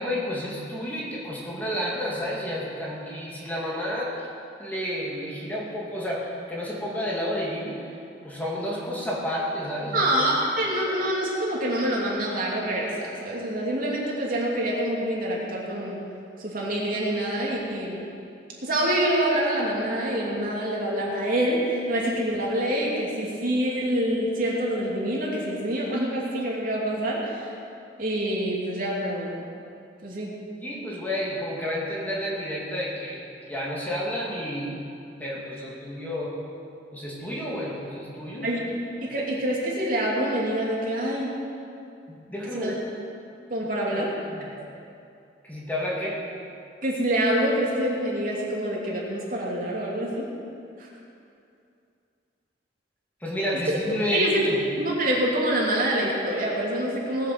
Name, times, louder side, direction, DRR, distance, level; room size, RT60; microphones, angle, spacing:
voice 1, 0.0-4.1 4.6-7.9 8.2-10.1 30.6-33.2 33.5-34.9 35.2-36.4 36.9-38.5 42.3-42.8 43.8-44.5 45.4-46.2 53.2-54.6, equal, 10° left, -5 dB, 2.3 m, -30 dB
voice 2, 9.9-16.0 16.4-18.1 18.6-27.4 28.0-29.4 30.0-30.3 38.4-41.3 42.5-42.7 43.5-44.1 44.6-44.7 46.8-50.3 50.8-50.9 54.1-57.3, right 1 dB, 50° right, -3 dB, 2.9 m, -26 dB
18.5 x 7.6 x 7.6 m, 2.5 s
head